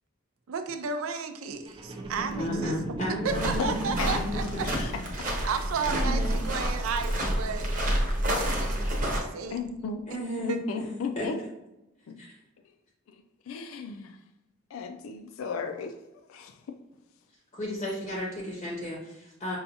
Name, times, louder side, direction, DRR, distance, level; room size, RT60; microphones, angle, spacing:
voice 1, 0.5-2.7 3.2-4.7 5.5-7.8 8.4-9.6 10.5-10.6, right 5 dB, 90° right, 8 dB, 0.4 m, -33 dB
sound 1, 1.6-9.1 9.7-9.8, right 1 dB, 25° right, 0.4 m, -40 dB
voice 2, 2.4-4.6 5.4-6.3 9.0-9.1 10.1-10.9 11.1-11.3 12.2-12.3 17.5-19.6, equal, 30° left, -3 dB, 0.6 m, -34 dB
sound 2, 3.3-9.2, equal, 40° right, 0.8 m, -29 dB
voice 3, 3.6-4.2 4.6-4.9 9.5-10.1 10.4-11.4 12.1-12.2 13.1-14.2 14.7-16.0 16.3-16.6, left 5 dB, 90° left, 7 dB, 0.4 m, -35 dB
5.5 x 2.3 x 2.7 m, 0.93 s
head